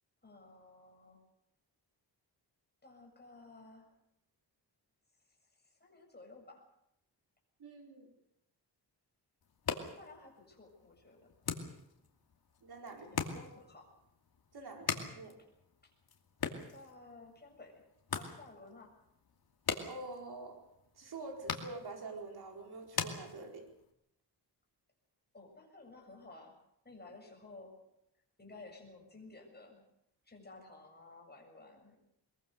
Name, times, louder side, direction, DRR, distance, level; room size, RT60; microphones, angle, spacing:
voice 1, 0.2-1.2 2.8-3.9 5.3-6.6 9.9-11.3 12.9-13.9 15.8-15.9 16.4-17.9 18.2-18.9 25.3-26.5 26.8-27.7 28.4-29.9 30.2-32.0, left 2 dB, 25° left, 1 dB, 7.3 m, -55 dB
voice 2, 7.6-8.1 12.6-13.1 14.5-15.3 19.8-20.6 21.0-23.6, right 3 dB, 60° right, 2 dB, 4.7 m, -46 dB
sound 1, 9.4-23.9, left 6 dB, 60° left, 2.6 m, -43 dB
22.5 x 22.5 x 6.8 m, 0.78 s
wide cardioid pair, 135°, 42 cm